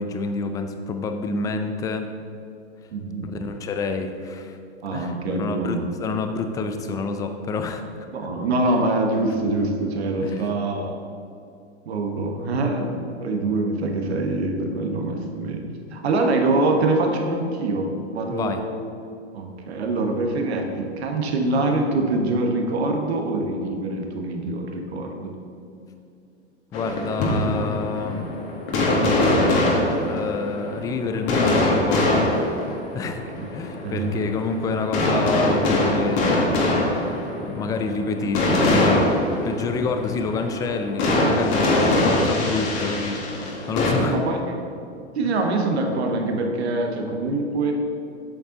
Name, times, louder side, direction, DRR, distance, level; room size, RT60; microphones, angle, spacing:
voice 1, 0.0-2.1 3.2-4.6 4.9-8.1 10.2-10.5 18.3-18.6 26.7-28.3 30.1-32.3 32.9-33.2 33.5-36.7 37.4-44.2 45.2-45.3, left 4 dB, 10° left, 7 dB, 0.4 m, -28 dB
voice 2, 2.9-3.3 4.8-5.9 8.1-11.0 11.9-15.6 15.9-18.7 19.3-25.3 33.0-33.1 33.4-33.5 33.8-34.2 37.7-37.8 44.0-44.4 45.1-47.7, right 2 dB, 70° right, 3 dB, 1.3 m, -24 dB
sound 1, 26.7-43.9, left 1 dB, 50° left, 1.9 m, -23 dB
8.3 x 6.9 x 3.8 m, 2.6 s
hypercardioid pair, 105°, 34 cm